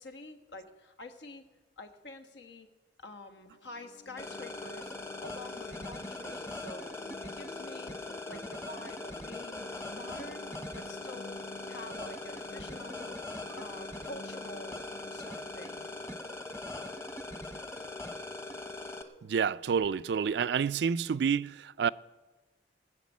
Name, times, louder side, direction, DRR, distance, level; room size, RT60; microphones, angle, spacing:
voice 1, 0.0-1.4 1.8-2.7 3.0-4.9 5.2-6.9 7.2-7.9 8.3-10.5 10.7-11.4 11.7-13.2 13.5-15.9, left 2 dB, 80° left, 1.4 m, -47 dB
sound 1, 3.4-17.0, left 1 dB, 45° left, 0.8 m, -52 dB
sound 2, 4.2-19.0, left 2 dB, 15° left, 0.9 m, -41 dB
voice 2, 19.2-21.9, right 6 dB, 70° right, 0.3 m, -29 dB
19.5 x 6.7 x 8.3 m
head